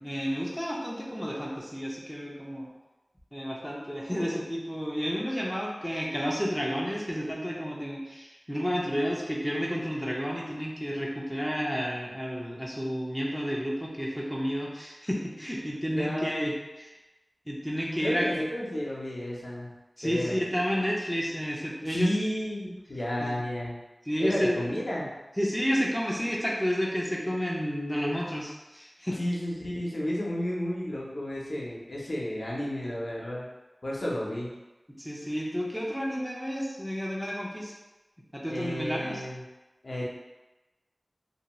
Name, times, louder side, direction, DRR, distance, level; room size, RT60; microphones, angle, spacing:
voice 1, 0.0-2.7 3.3-16.9 17.5-18.3 20.0-22.1 23.2-23.3 24.1-24.6 25.4-29.2 34.9-37.7 38.3-39.2, equal, ahead, -3 dB, 0.5 m, -31 dB
voice 2, 15.9-16.4 18.0-19.7 20.0-20.4 21.8-23.8 24.2-25.1 29.2-33.5 33.8-34.5 38.5-39.4 39.8-40.0, left 1 dB, 70° left, -4 dB, 0.6 m, -32 dB
2.6 x 2.2 x 3.0 m, 1.1 s
wide cardioid pair, 40°, 0 cm